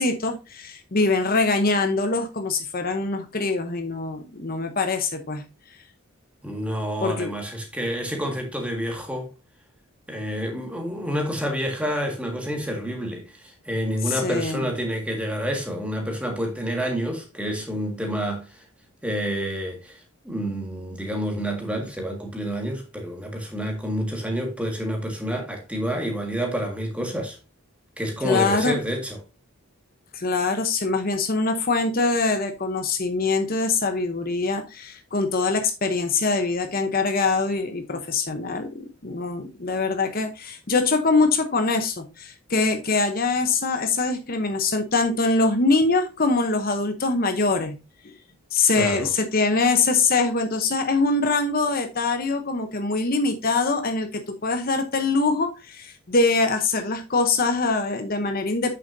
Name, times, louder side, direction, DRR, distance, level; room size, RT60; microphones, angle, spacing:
voice 1, 0.0-5.4 7.0-7.3 14.0-14.7 28.2-28.7 30.1-47.8 48.5-58.7, left 3 dB, 40° left, 0.8 m, -23 dB
voice 2, 6.4-9.3 10.1-18.6 19.0-20.0 20.3-27.4 28.0-29.2 48.7-49.1, equal, 5° right, 1.8 m, -28 dB
8.7 x 6.8 x 2.6 m
head